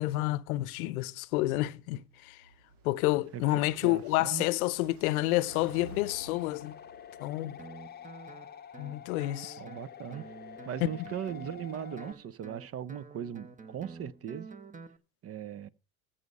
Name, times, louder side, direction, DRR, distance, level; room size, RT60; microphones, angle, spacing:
voice 1, 0.0-2.4 2.8-6.8 7.2-7.6 8.8-9.6 10.8-10.9, left 18 dB, 75° left, 0.7 m, -29 dB
Car passing by, 2.0-7.5, right 5 dB, 90° right, 1.6 m, -53 dB
voice 2, 3.3-4.5 9.6-10.3 10.7-14.5 15.2-15.7, right 9 dB, 35° right, 0.6 m, -39 dB
sound 1, 5.5-12.1, left 9 dB, 25° left, 0.9 m, -48 dB
Guitar, 7.6-15.0, right 4 dB, 20° right, 1.0 m, -49 dB
15.0 x 5.6 x 5.3 m
hypercardioid pair, 90°, 43 cm